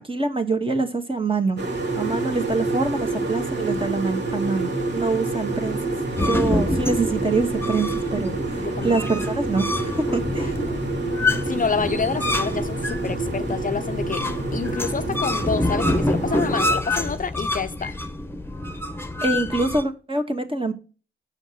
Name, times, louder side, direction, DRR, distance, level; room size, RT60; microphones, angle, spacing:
voice 1, 0.0-1.6 2.0-5.8 6.2-10.6 19.2-20.7, right 3 dB, 25° right, 1.9 m, -25 dB
sound 1, 1.6-16.7, right 2 dB, 60° right, 2.7 m, -28 dB
sound 2, 6.2-19.8, left 2 dB, 10° left, 1.1 m, -27 dB
voice 2, 8.6-9.0 10.4-11.0 11.4-14.2 14.5-17.9, left 5 dB, 40° left, 0.6 m, -28 dB
7.2 x 5.2 x 6.5 m
cardioid pair, 50°, 21 cm